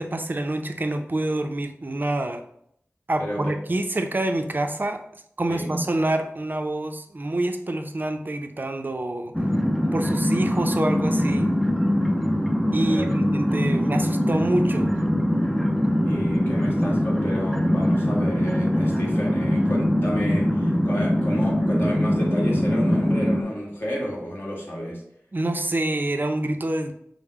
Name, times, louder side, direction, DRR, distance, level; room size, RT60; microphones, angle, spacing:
voice 1, 0.0-2.4 3.1-5.0 5.4-9.3 9.9-11.5 12.7-15.0 25.3-26.9, right 1 dB, 40° right, 6 dB, 0.5 m, -26 dB
voice 2, 3.2-3.8 5.5-5.8 12.9-13.1 16.0-25.0, equal, 45° left, -3 dB, 1.6 m, -31 dB
sound 1, 9.3-23.4, equal, 5° left, 0.5 m, -22 dB
5.3 x 2.1 x 4.7 m, 0.70 s
wide cardioid pair, 70°, 5 cm